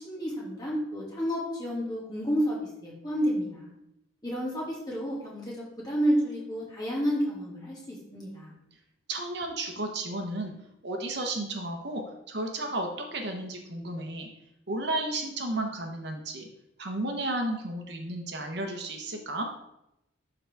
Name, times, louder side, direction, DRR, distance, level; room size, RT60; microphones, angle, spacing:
voice 1, 0.0-3.7 4.2-5.4 5.8-8.5, equal, 20° left, -5 dB, 2.1 m, -30 dB
voice 2, 9.1-10.5 10.8-14.3 14.7-16.5 16.8-19.5, right 2 dB, 55° right, 3 dB, 0.9 m, -33 dB
11.5 x 3.9 x 3.4 m, 0.84 s
head